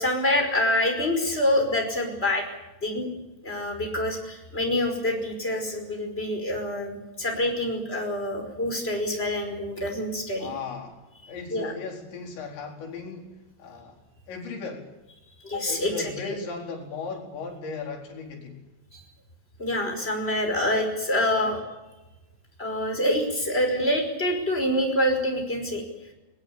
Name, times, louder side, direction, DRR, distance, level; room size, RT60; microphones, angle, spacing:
voice 1, 0.0-2.4 2.8-3.1 3.4-10.5 11.5-11.7 15.4-16.3 18.9-19.0 19.6-21.6 22.6-25.8, left 1 dB, 15° left, 3 dB, 5.0 m, -26 dB
voice 2, 10.4-14.0 14.3-14.9 15.7-18.6 21.4-21.6, left 4 dB, 75° left, 0 dB, 6.5 m, -37 dB
22.0 x 20.5 x 8.5 m, 1.1 s
omnidirectional pair, 5.3 m